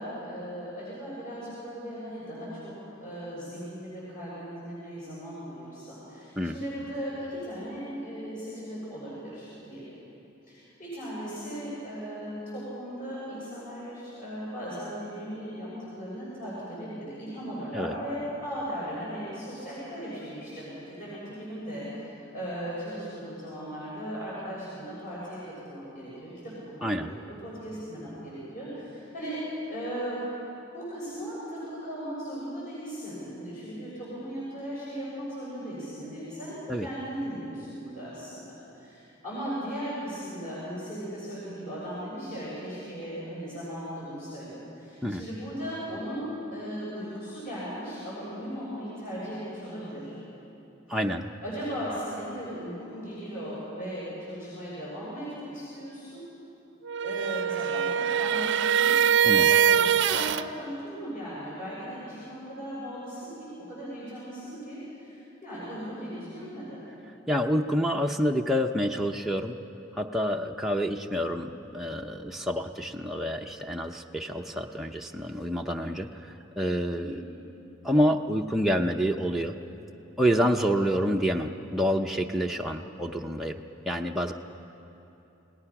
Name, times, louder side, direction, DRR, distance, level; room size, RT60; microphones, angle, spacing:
voice 1, 0.0-9.9 10.5-15.7 16.0-30.2 30.7-50.1 51.4-56.2 57.0-66.8 77.0-77.2, equal, 45° left, -9 dB, 6.7 m, -37 dB
voice 2, 26.8-27.1 36.7-36.9 45.0-45.2 50.9-51.3 59.2-59.5 67.3-69.6 69.9-77.2 77.8-79.6 80.2-84.3, equal, ahead, 0 dB, 0.6 m, -28 dB
sound 1, 56.9-60.5, right 9 dB, 60° right, 0.6 m, -23 dB
29.5 x 18.5 x 5.9 m, 3.0 s
head